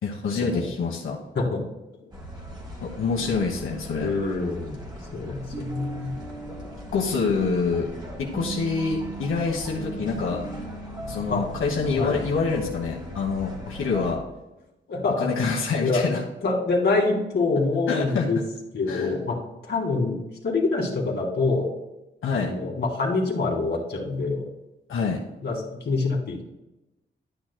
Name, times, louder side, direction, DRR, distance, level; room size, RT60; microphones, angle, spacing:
voice 1, 0.0-1.2 2.8-4.1 6.9-7.9 8.2-10.4 11.1-14.2 15.2-16.2 17.9-18.2 18.9-19.1 22.2-22.5 24.9-25.2, left 4 dB, 90° left, -2 dB, 1.3 m, -26 dB
sound 1, 2.1-14.1, equal, 20° right, 2.2 m, -37 dB
voice 2, 4.0-4.8 5.1-6.1 11.3-11.4 11.9-12.2 14.9-16.2 16.4-18.4 18.7-19.4 19.6-20.2 20.4-21.7 22.3-24.5 25.4-26.4, left 3 dB, 55° left, -1 dB, 2.2 m, -25 dB
Bass guitar, 9.7-13.4, right 2 dB, 85° right, 2.9 m, -44 dB
11.5 x 9.0 x 2.3 m, 0.96 s
wide cardioid pair, 155°, 20 cm